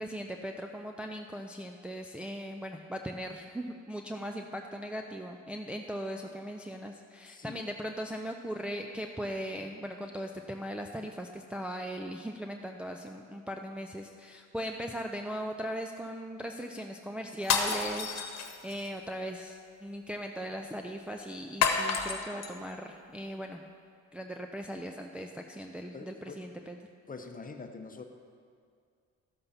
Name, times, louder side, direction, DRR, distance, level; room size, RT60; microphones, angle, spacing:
voice 1, 0.0-23.6 24.1-26.8, equal, 5° right, 2 dB, 0.5 m, -39 dB
voice 2, 7.3-7.6 25.9-26.4 27.1-28.0, left 4 dB, 25° left, 5 dB, 1.0 m, -44 dB
sound 1, 17.4-18.9 21.6-22.5, left 6 dB, 60° left, 1.3 m, -30 dB
13.5 x 6.7 x 5.7 m, 2.2 s
cardioid pair, 90°, 30 cm